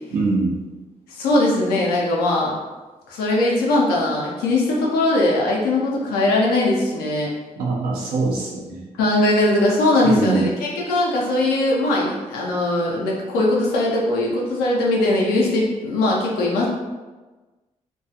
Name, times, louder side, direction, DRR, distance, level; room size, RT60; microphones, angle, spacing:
voice 1, 0.1-0.6 7.6-8.9 10.0-10.5, right 3 dB, 85° right, -3 dB, 0.6 m, -23 dB
voice 2, 1.1-2.5 3.1-7.3 9.0-16.7, left 2 dB, 85° left, -3 dB, 0.5 m, -20 dB
2.3 x 2.3 x 2.7 m, 1.2 s
hypercardioid pair, 40°, 16 cm